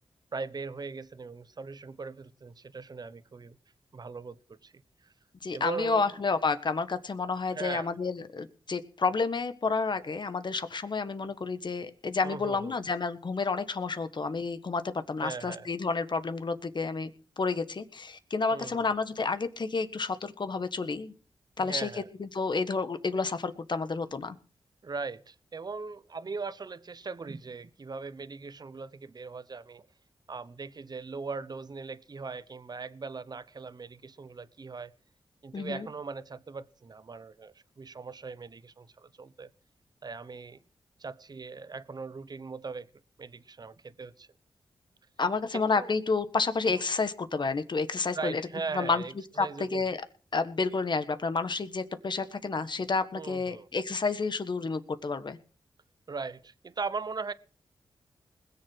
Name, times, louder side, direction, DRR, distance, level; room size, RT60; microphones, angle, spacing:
voice 1, 0.3-3.6 3.9-4.7 5.0-5.1 5.5-6.2 7.5-7.9 12.2-12.8 15.2-15.7 18.5-18.9 21.6-22.1 24.8-29.9 30.3-34.9 35.4-39.5 40.0-40.6 41.0-42.9 43.2-44.3 45.5-45.9 46.7-46.8 48.1-49.9 53.1-53.7 56.1-57.3, right 4 dB, 45° right, 0.9 m, -39 dB
voice 2, 5.4-17.1 17.4-21.1 21.6-21.9 22.2-24.4 35.5-35.9 45.2-48.4 48.7-49.0 49.4-50.0 50.3-55.4, left 4 dB, 55° left, 1.6 m, -30 dB
20.5 x 7.2 x 6.2 m
cardioid pair, 55°, 9 cm